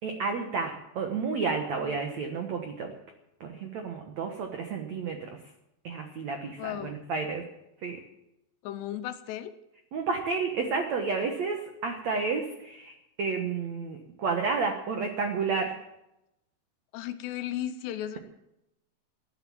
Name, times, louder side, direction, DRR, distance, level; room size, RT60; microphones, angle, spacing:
voice 1, 0.0-2.9 3.4-5.4 5.8-7.4 7.8-8.0 9.9-15.7, right 4 dB, 75° right, 4 dB, 1.6 m, -31 dB
voice 2, 6.6-7.0 8.6-9.5 16.9-18.2, left 11 dB, 80° left, 11 dB, 2.8 m, -35 dB
15.0 x 11.5 x 7.3 m, 0.87 s
omnidirectional pair, 5.2 m